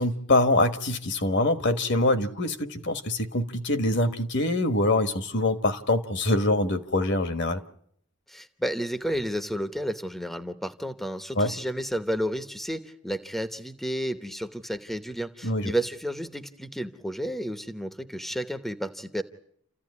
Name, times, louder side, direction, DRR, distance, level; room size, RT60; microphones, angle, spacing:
voice 1, 0.0-7.6 11.3-11.5 15.4-15.7, left 2 dB, 50° left, 1.5 m, -24 dB
voice 2, 8.3-19.2, equal, ahead, 0.9 m, -31 dB
29.0 x 15.0 x 9.7 m
head